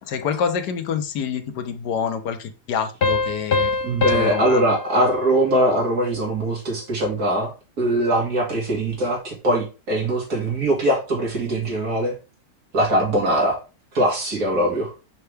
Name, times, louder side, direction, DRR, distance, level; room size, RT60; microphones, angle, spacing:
voice 1, 0.0-3.7 4.1-4.6, left 7 dB, 80° left, 8 dB, 1.4 m, -27 dB
sound 1, 3.0-6.3, left 3 dB, 50° left, 0.8 m, -25 dB
voice 2, 3.8-7.5 7.8-12.1 12.7-13.6 13.9-14.9, right 1 dB, 60° right, -2 dB, 2.8 m, -21 dB
5.8 x 5.5 x 3.3 m, 0.31 s
omnidirectional pair, 1.7 m